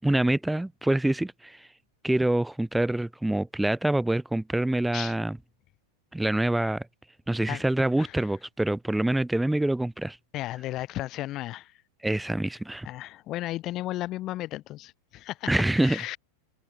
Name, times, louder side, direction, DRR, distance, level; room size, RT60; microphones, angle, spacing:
voice 1, 0.0-1.7 2.0-5.4 6.1-6.9 7.3-10.2 12.0-12.9 15.5-16.0, right 1 dB, 5° right, 0.8 m, -26 dB
voice 2, 10.3-11.8 12.8-16.2, left 15 dB, 35° left, 1.2 m, -34 dB
figure-of-eight pair, 90°, 0 cm